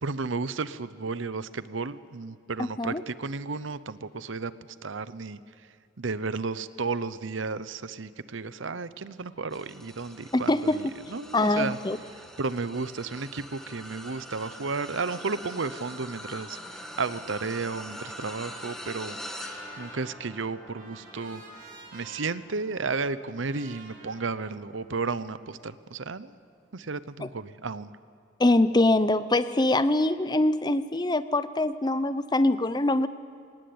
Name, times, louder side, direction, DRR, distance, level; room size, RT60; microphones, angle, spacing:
voice 1, 0.0-4.5 4.8-5.4 6.0-11.8 12.4-19.2 19.8-21.4 21.9-26.4 26.7-28.0, right 4 dB, 75° right, 15 dB, 0.8 m, -33 dB
voice 2, 2.6-3.0 10.3-10.8 11.3-12.0 27.2-27.3 28.4-33.1, left 2 dB, 20° left, 13 dB, 0.6 m, -23 dB
sound 1, 9.5-25.0 25.5-25.8 27.0-27.1, equal, ahead, 1.8 m, -44 dB
Trumpet, 19.1-25.3, right 2 dB, 45° right, 5.9 m, -51 dB
27.5 x 18.5 x 8.7 m, 2.2 s
head